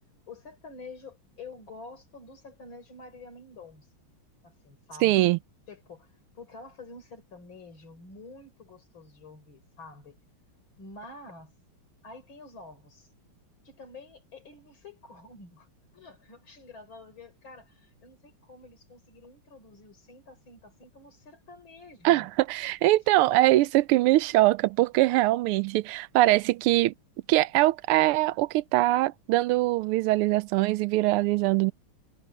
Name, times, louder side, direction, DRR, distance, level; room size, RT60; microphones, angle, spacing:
voice 1, 0.3-3.9 4.4-5.3 5.7-10.2 10.8-11.5 12.0-13.1 13.6-15.7 15.9-22.3 22.6-22.7 23.1-23.5, left 3 dB, 65° left, 5.1 m, -48 dB
voice 2, 5.0-5.4 22.0-26.9 27.3-31.7, right 17 dB, 85° right, 1.5 m, -22 dB
omnidirectional pair, 2.4 m